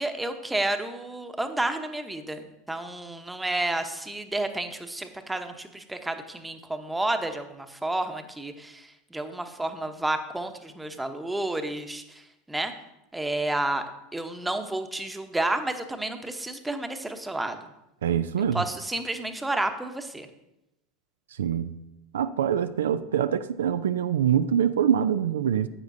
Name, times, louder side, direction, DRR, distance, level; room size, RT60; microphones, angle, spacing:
voice 1, 0.0-12.2 12.5-12.7 13.1-13.8 14.1-17.6 18.5-20.3, right 2 dB, 10° right, 7 dB, 0.9 m, -31 dB
voice 2, 18.0-18.6 21.4-21.7 22.1-25.7, right 9 dB, 80° right, 12 dB, 0.3 m, -24 dB
10.0 x 8.1 x 2.6 m, 0.91 s
hypercardioid pair, 85°, 0 cm